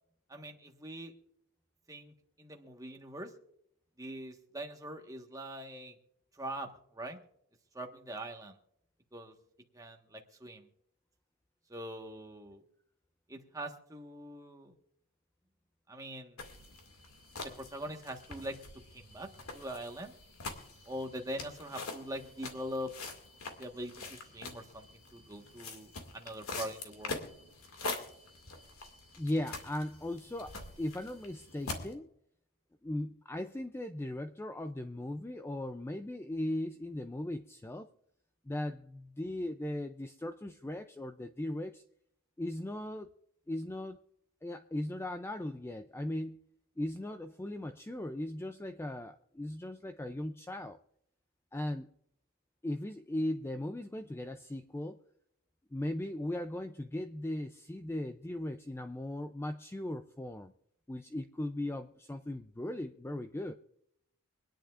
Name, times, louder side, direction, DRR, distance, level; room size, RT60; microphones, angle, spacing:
voice 1, 0.3-1.1 1.9-2.1 2.4-3.3 4.0-6.0 6.4-7.2 7.7-8.6 9.1-9.3 9.7-10.7 11.7-12.6 13.3-14.7 15.9-16.4 17.6-18.6 18.9-19.3 19.5-20.1 20.9-22.9 23.6-27.2, right 1 dB, 15° right, 3 dB, 1.4 m, -42 dB
sound 1, 16.4-31.9, left 3 dB, 80° left, 2.2 m, -45 dB
voice 2, 29.2-32.1 32.8-37.9 38.5-41.8 42.4-43.1 43.5-44.0 44.4-46.4 46.8-50.8 51.5-51.9 52.6-55.0 55.7-60.5 60.9-63.5, left 1 dB, 10° left, 8 dB, 0.4 m, -38 dB
25.5 x 10.5 x 2.5 m, 0.73 s
head